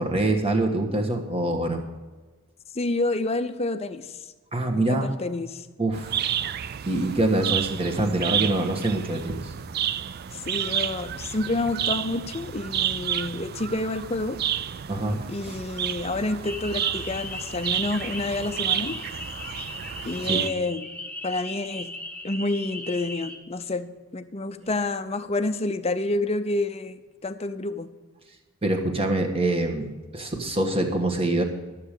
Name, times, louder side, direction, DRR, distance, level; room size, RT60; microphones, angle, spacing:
voice 1, 0.0-1.8 4.5-5.1 5.8-6.3 6.8-9.5 14.9-15.6 20.2-20.4 28.6-31.4, right 2 dB, 25° right, 3 dB, 1.4 m, -25 dB
voice 2, 2.7-4.1 4.7-5.7 10.3-14.4 15.3-19.0 20.0-20.9 21.2-21.9 22.2-23.9 24.1-27.9, left 2 dB, 30° left, 10 dB, 0.6 m, -28 dB
sound 1, 5.9-20.5, right 9 dB, 45° right, 0.4 m, -30 dB
sound 2, 16.4-23.4, left 2 dB, 5° left, 1.0 m, -38 dB
12.5 x 7.4 x 6.6 m, 1.3 s
head